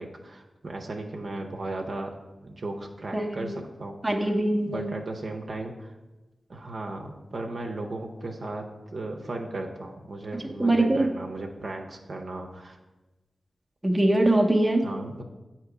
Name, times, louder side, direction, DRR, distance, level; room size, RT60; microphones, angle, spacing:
voice 1, 0.0-2.1 2.4-4.3 4.7-5.9 6.5-12.8 14.8-15.2, right 2 dB, 60° right, 1 dB, 0.7 m, -36 dB
voice 2, 3.1-3.5 4.0-4.9 10.6-11.1 13.8-14.8, right 1 dB, 15° right, 2 dB, 0.7 m, -22 dB
8.0 x 2.9 x 4.8 m, 1.1 s
cardioid pair, 60°, 0 cm